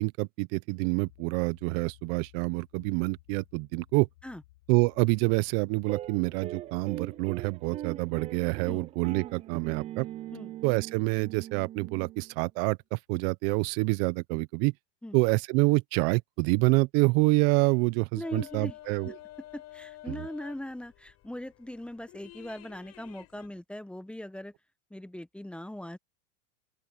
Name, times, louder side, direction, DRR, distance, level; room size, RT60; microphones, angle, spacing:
voice 1, 0.0-4.1 4.7-10.1 10.6-14.7 15.1-19.1 20.1-20.2, right 27 dB, 50° right, 0.8 m, -27 dB
sound 1, 1.0-12.3, left 18 dB, 70° left, 5.3 m, -60 dB
sound 2, 5.9-12.4, right 13 dB, 20° right, 0.3 m, -41 dB
voice 2, 18.1-18.8 19.0-19.1 19.5-24.5 24.9-26.0, left 1 dB, 5° left, 1.2 m, -40 dB
sound 3, 18.2-23.5, left 16 dB, 40° left, 5.2 m, -50 dB
open air
hypercardioid pair, 120°, 39 cm